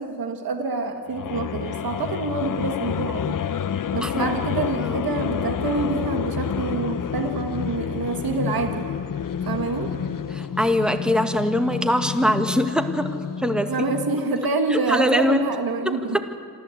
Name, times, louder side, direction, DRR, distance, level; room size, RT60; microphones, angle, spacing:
voice 1, 0.0-3.3 3.9-8.8 9.4-9.9 13.7-16.2, right 3 dB, 90° right, 6 dB, 1.5 m, -27 dB
sound 1, 1.1-14.4, left 8 dB, 65° left, 0.8 m, -29 dB
voice 2, 4.0-4.3 4.8-5.0 10.3-13.7 14.7-15.5 15.9-16.2, equal, ahead, 7 dB, 1.8 m, -23 dB
27.0 x 14.0 x 8.4 m, 2.2 s
cardioid pair, 65°, 35 cm